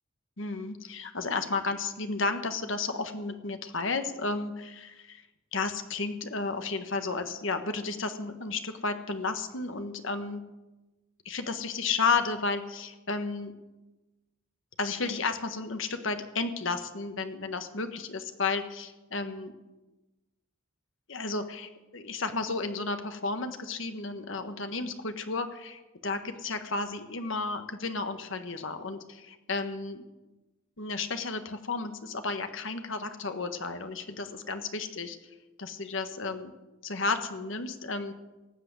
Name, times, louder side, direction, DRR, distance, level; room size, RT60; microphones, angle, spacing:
voice 1, 0.4-5.2 5.5-10.4 11.2-13.5 14.8-19.5 21.1-30.0 30.8-35.2 35.6-36.5 36.8-38.1, left 4 dB, 65° left, 8 dB, 1.4 m, -32 dB
18.5 x 7.9 x 8.1 m, 1.1 s
head